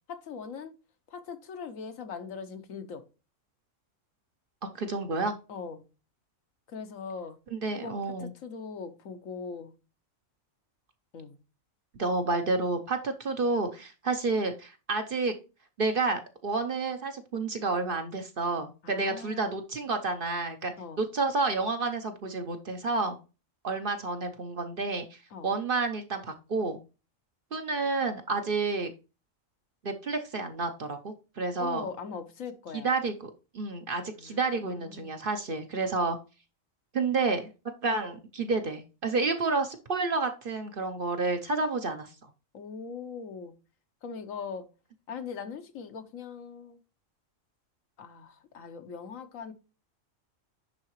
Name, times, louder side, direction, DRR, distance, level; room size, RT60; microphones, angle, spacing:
voice 1, 0.1-0.7 1.1-3.0 5.5-5.9 6.7-7.4 7.8-7.9 8.2-9.7 11.1-11.4 18.8-19.6 20.8-21.0 25.3-25.5 31.6-32.9 34.2-35.1 42.5-43.5 44.0-44.7 45.1-46.8 48.0-49.5, left 5 dB, 75° left, 1.3 m, -40 dB
voice 2, 4.7-5.4 7.5-8.3 12.0-15.3 15.8-20.7 21.0-23.2 23.6-26.8 27.5-28.9 29.8-31.8 32.7-33.3 33.5-36.2 36.9-37.5 37.8-42.1, right 3 dB, 50° right, 0.8 m, -30 dB
10.5 x 3.6 x 3.0 m
omnidirectional pair, 1.4 m